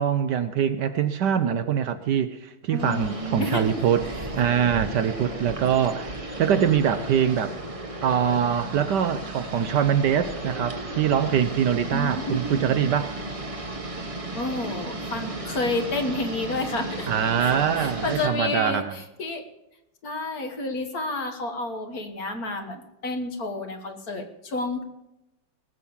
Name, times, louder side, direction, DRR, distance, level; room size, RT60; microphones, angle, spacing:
voice 1, 0.0-7.6 8.0-13.1 17.1-18.9, right 8 dB, 65° right, 11 dB, 1.2 m, -24 dB
voice 2, 2.7-3.8 11.9-12.8 14.4-17.1 17.4-19.4 20.0-24.8, left 2 dB, 50° left, 6 dB, 1.8 m, -30 dB
sound 1, 2.8-18.3, right 2 dB, 20° right, 1.0 m, -35 dB
18.5 x 7.5 x 7.1 m, 0.89 s
omnidirectional pair, 2.2 m